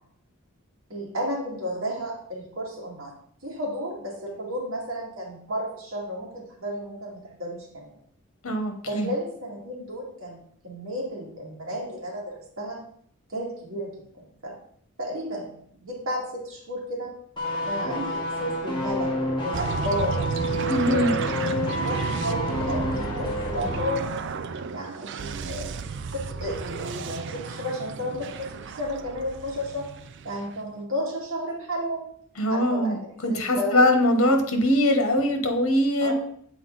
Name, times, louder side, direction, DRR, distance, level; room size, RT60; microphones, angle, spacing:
voice 1, 0.9-3.2 3.4-8.0 8.9-10.4 10.6-12.8 13.3-14.6 15.0-15.5 15.8-17.1 17.6-20.2 20.8-24.3 24.7-25.7 26.1-29.9 30.2-32.1 32.5-33.9 36.0-36.1, equal, 75° right, -3 dB, 2.2 m, -32 dB
voice 2, 8.4-9.1 20.7-21.1 32.4-33.0 33.2-36.1, left 1 dB, 80° left, 6 dB, 1.1 m, -22 dB
sound 1, 17.4-24.0 24.3-24.5, equal, 20° left, 1.4 m, -29 dB
sound 2, 19.5-30.7, right 5 dB, 55° right, 0.4 m, -33 dB
7.5 x 4.5 x 3.9 m, 0.63 s
head